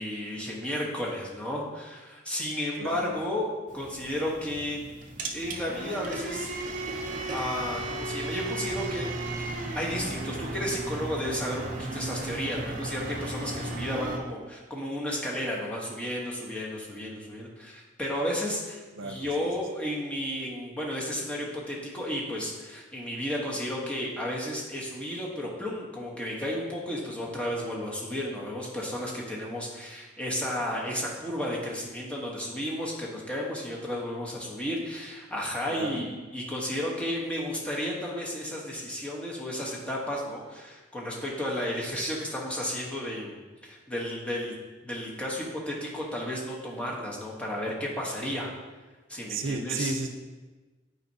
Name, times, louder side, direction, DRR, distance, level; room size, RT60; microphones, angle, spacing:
voice 1, 0.0-4.8 5.3-6.5 7.3-9.1 9.7-44.5 44.8-48.5 49.1-50.0, equal, 5° left, -4 dB, 1.1 m, -33 dB
voice 2, 2.8-3.1 19.0-19.3 35.7-36.0 49.3-50.1, right 3 dB, 85° right, 5 dB, 0.6 m, -33 dB
sound 1, 3.7-14.2, right 2 dB, 45° right, 0.6 m, -35 dB
9.0 x 4.5 x 2.7 m, 1.3 s
head